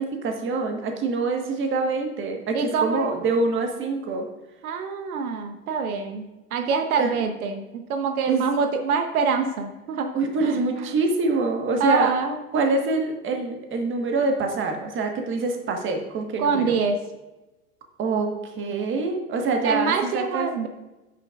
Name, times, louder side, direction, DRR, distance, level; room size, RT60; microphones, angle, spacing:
voice 1, 0.0-4.3 7.0-7.2 8.3-8.5 10.1-12.2 12.5-16.8 18.0-20.5, right 3 dB, 25° right, 3 dB, 1.5 m, -25 dB
voice 2, 2.5-3.1 4.6-6.2 6.5-10.1 10.4-10.5 11.8-12.4 16.4-17.0 19.4-20.7, right 5 dB, 70° right, 6 dB, 1.0 m, -25 dB
14.5 x 5.8 x 2.5 m, 1.1 s
hypercardioid pair, 110°, 45 cm